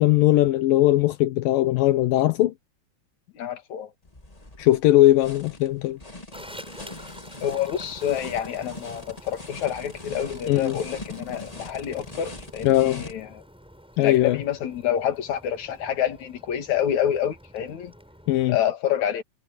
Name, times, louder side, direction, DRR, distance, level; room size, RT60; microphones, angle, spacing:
voice 1, 0.0-2.5 4.6-6.0 10.5-10.8 12.6-13.0 14.0-14.4 18.3-18.6, left 15 dB, 80° left, 2.6 m, -19 dB
voice 2, 3.3-3.9 7.4-13.4 14.0-17.9 18.5-19.2, left 10 dB, 60° left, 3.3 m, -27 dB
sound 1, 4.0-13.1, left 2 dB, 15° left, 1.3 m, -42 dB
sound 2, 6.3-18.5, equal, ahead, 7.3 m, -47 dB
omnidirectional pair, 3.9 m